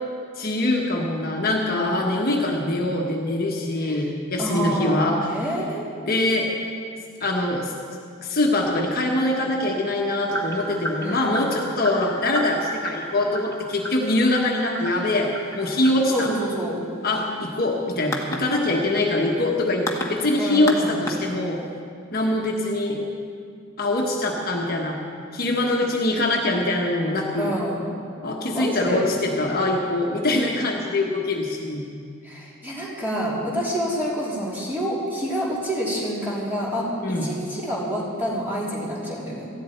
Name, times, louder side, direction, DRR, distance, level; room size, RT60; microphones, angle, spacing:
voice 1, 0.4-5.2 6.0-6.5 7.2-7.7 8.2-16.3 17.0-21.6 22.1-23.0 23.8-25.0 25.3-27.6 28.2-31.9 37.0-37.3, left 2 dB, 45° left, 0 dB, 1.3 m, -23 dB
voice 2, 4.4-5.9 11.0-11.2 16.1-16.8 20.4-21.0 27.3-27.9 28.5-29.2 32.2-39.5, equal, 10° right, -6 dB, 3.2 m, -27 dB
sound 1, 10.3-21.8, equal, 15° left, 1.5 m, -34 dB
18.5 x 14.5 x 4.5 m, 2.4 s
head